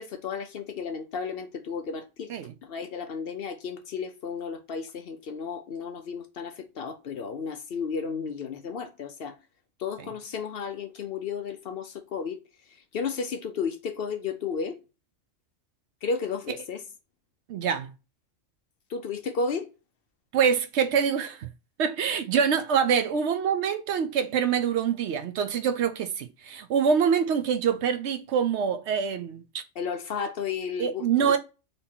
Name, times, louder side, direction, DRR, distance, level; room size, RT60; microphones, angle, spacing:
voice 1, 0.0-2.3 2.6-9.3 9.8-12.4 12.9-14.8 16.0-16.8 18.9-19.7 29.8-31.4, left 5 dB, 60° left, 0.8 m, -33 dB
voice 2, 17.5-17.9 20.3-21.5 21.8-29.6 30.8-31.4, right 7 dB, 70° right, 0.9 m, -25 dB
4.0 x 2.9 x 3.6 m
omnidirectional pair, 1.3 m